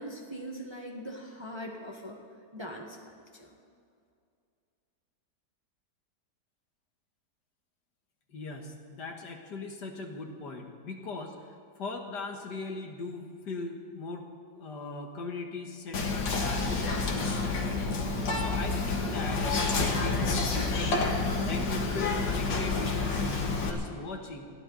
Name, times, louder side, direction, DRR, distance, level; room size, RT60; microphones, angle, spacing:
voice 1, 0.0-2.2 2.5-3.5, equal, 15° right, 0 dB, 1.4 m, -41 dB
voice 2, 8.3-11.4 11.8-14.3 14.6-17.8 18.1-21.1 21.4-24.5, left 3 dB, 70° left, 3 dB, 2.1 m, -39 dB
Whispering, 15.9-23.7, left 3 dB, 85° left, 2.4 m, -29 dB
21.5 x 15.5 x 4.1 m, 2.3 s
omnidirectional pair, 1.9 m